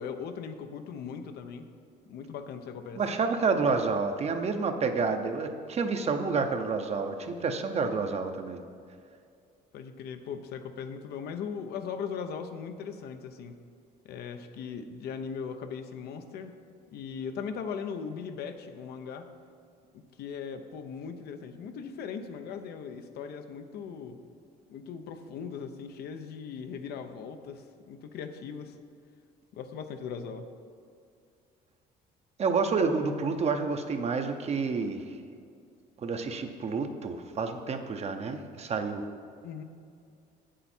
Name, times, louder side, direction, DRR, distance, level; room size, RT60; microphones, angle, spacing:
voice 1, 0.0-1.7 2.1-3.0 9.7-13.6 14.0-16.5 16.9-19.3 19.9-24.2 24.7-28.8 29.5-30.5 39.4-39.6, left 6 dB, 70° left, 8 dB, 0.7 m, -39 dB
voice 2, 3.0-8.6 32.4-35.1 36.0-39.1, right 4 dB, 40° right, 6 dB, 0.7 m, -29 dB
8.1 x 7.5 x 4.3 m, 2.4 s
cardioid pair, 110°, 17 cm